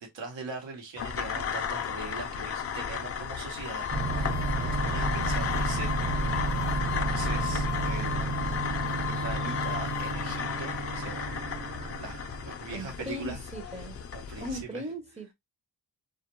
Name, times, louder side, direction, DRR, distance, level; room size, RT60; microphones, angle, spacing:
voice 1, 0.0-6.5 7.0-11.4 12.0-13.4 13.8-13.9 14.1-14.8, right 3 dB, 80° right, 1.0 m, -41 dB
sound 1, 1.0-14.6, left 7 dB, 35° left, 0.4 m, -35 dB
sound 2, 3.7-10.1, left 9 dB, 40° right, 0.9 m, -38 dB
sound 3, 3.9-12.5, right 3 dB, 60° right, 1.2 m, -31 dB
voice 2, 12.7-14.0 14.4-15.3, equal, 15° right, 0.5 m, -38 dB
2.3 x 2.1 x 2.8 m
cardioid pair, 75°, 43 cm